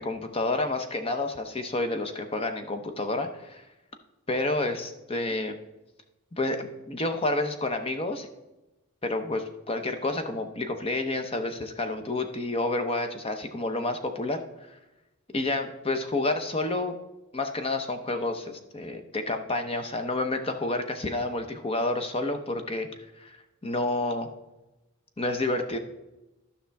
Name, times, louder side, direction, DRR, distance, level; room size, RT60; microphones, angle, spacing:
voice 1, 0.0-3.6 4.3-5.6 6.4-8.3 9.0-14.4 14.7-14.8 15.3-16.9 17.3-22.9 23.2-23.4 23.6-24.3 25.2-25.8, left 2 dB, 25° left, 7 dB, 0.7 m, -29 dB
12.5 x 5.8 x 3.4 m, 1.0 s
head